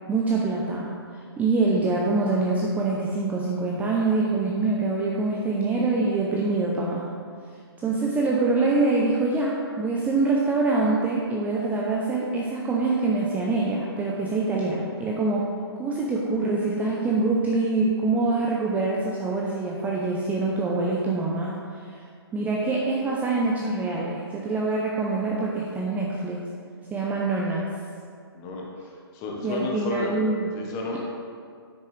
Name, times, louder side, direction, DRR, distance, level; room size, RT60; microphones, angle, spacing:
voice 1, 0.1-7.1 7.8-15.5 15.8-21.5 21.8-22.0 22.3-26.4 26.9-27.6 29.4-30.5, right 3 dB, 10° right, -3 dB, 0.7 m, -25 dB
voice 2, 28.3-28.7 29.1-30.2 30.5-31.0, left 2 dB, 25° left, -1 dB, 1.3 m, -31 dB
12.0 x 6.5 x 3.4 m, 2.1 s
figure-of-eight pair, 125°, 14 cm